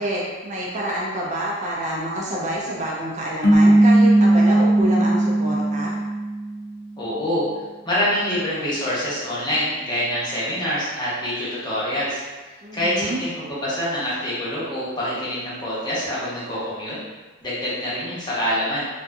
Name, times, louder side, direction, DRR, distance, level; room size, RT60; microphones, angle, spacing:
voice 1, 0.0-5.9 12.6-13.2, right 1 dB, 35° right, -4 dB, 0.3 m, -27 dB
sound 1, 3.4-6.8, right 1 dB, 50° left, 0.4 m, -17 dB
voice 2, 7.0-7.4 7.8-12.2 12.7-17.0 17.4-18.9, equal, 20° left, -8 dB, 0.8 m, -25 dB
2.6 x 2.4 x 2.3 m, 1.3 s
head